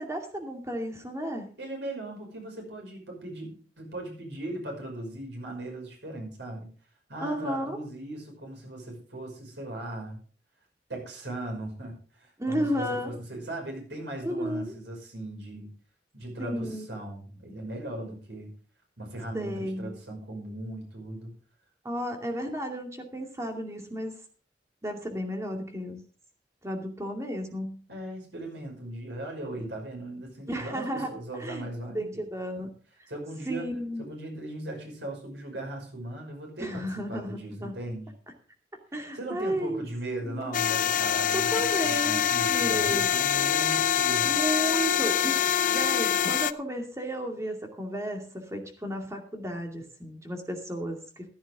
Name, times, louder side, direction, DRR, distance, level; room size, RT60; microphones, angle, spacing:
voice 1, 0.0-1.5 7.2-7.8 12.4-13.1 14.2-14.7 16.4-16.9 19.3-19.9 21.8-24.2 24.8-26.0 26.6-27.8 30.5-31.1 31.4-31.7 31.9-32.7 33.5-34.0 36.6-37.8 38.9-39.9 40.2-40.5 41.3-43.1 44.2-45.4 45.7-51.2, equal, 15° right, 3 dB, 2.3 m, -33 dB
voice 2, 1.6-6.7 7.1-10.2 10.9-15.7 16.1-18.5 19.0-21.3 27.9-32.2 33.1-33.7 34.0-38.1 39.1-44.4, right 1 dB, 85° right, 1 dB, 5.7 m, -38 dB
sound 1, 40.5-46.5, left 9 dB, 50° left, 0.5 m, -25 dB
15.0 x 11.5 x 3.6 m, 0.38 s
head